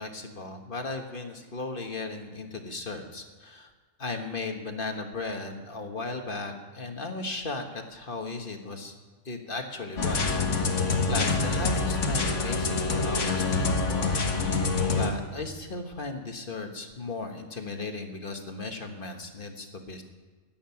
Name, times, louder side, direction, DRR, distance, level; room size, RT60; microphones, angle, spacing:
voice 1, 0.0-3.7 4.0-8.9 9.2-10.4 11.1-14.6 15.0-20.0, left 3 dB, 45° left, 4 dB, 1.6 m, -36 dB
sound 1, 10.0-15.1, left 3 dB, 70° left, 1.7 m, -26 dB
16.0 x 11.5 x 5.8 m, 1.4 s
omnidirectional pair, 1.3 m